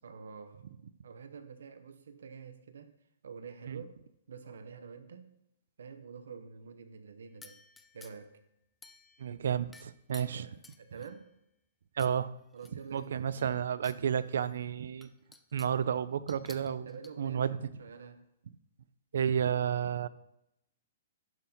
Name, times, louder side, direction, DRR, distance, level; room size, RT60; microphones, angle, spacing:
voice 1, 0.0-0.6 1.0-2.9 3.2-4.0 4.3-5.3 5.8-7.6 7.9-8.4 10.2-11.3 12.5-13.3 16.9-18.3, right 5 dB, 90° right, 0.8 m, -48 dB
sound 1, 7.4-8.4 8.8-9.4 9.7-11.3 12.0-12.2 12.5-14.0 14.4-14.5 15.0-15.8 16.3-17.1, left 3 dB, 5° left, 0.3 m, -55 dB
voice 2, 9.2-10.5 12.0-12.3 12.9-15.1 15.5-16.9 17.2-17.7 19.1-20.1, right 8 dB, 70° right, 0.4 m, -31 dB
11.5 x 4.3 x 3.9 m
hypercardioid pair, 170°, 0 cm